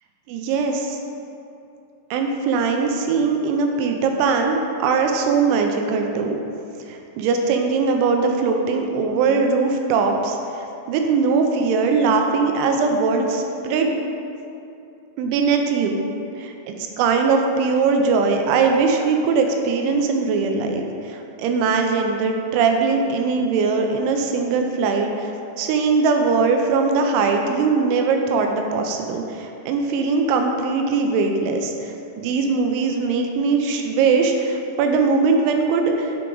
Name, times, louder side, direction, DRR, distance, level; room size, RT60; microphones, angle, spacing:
voice 1, 0.3-0.8 2.1-6.4 6.9-14.0 15.2-16.0 16.4-36.2, right 4 dB, 85° right, 3 dB, 2.8 m, -21 dB
9.0 x 4.8 x 3.8 m, 2.7 s
omnidirectional pair, 5.6 m